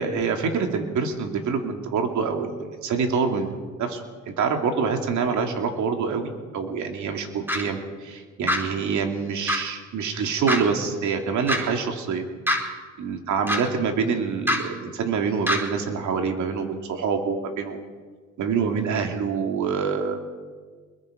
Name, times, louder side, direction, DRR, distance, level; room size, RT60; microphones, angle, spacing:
voice 1, 0.0-12.3 13.0-17.8 18.4-20.2, right 5 dB, 75° right, 3 dB, 2.9 m, -26 dB
sound 1, 7.5-7.6 8.5-8.6 9.5-9.6 10.5-10.6 11.5-11.6 12.5-12.6 13.5-13.6 14.5-14.6 15.5-15.6, left 1 dB, 5° right, 4.6 m, -22 dB
25.5 x 21.5 x 5.3 m, 1.5 s
cardioid pair, 90°, 30 cm